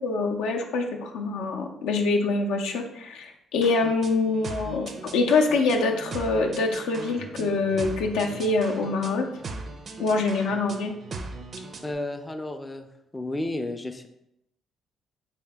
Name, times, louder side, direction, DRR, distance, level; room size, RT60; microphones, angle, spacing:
voice 1, 0.0-9.3 10.0-10.9, left 3 dB, 85° left, 2 dB, 0.4 m, -25 dB
sound 1, 3.6-11.9, right 3 dB, 50° right, 0.4 m, -39 dB
voice 2, 11.8-12.9 13.1-14.1, left 1 dB, 15° left, 7 dB, 0.4 m, -32 dB
3.3 x 2.7 x 3.4 m, 0.81 s
supercardioid pair, 75°, 0 cm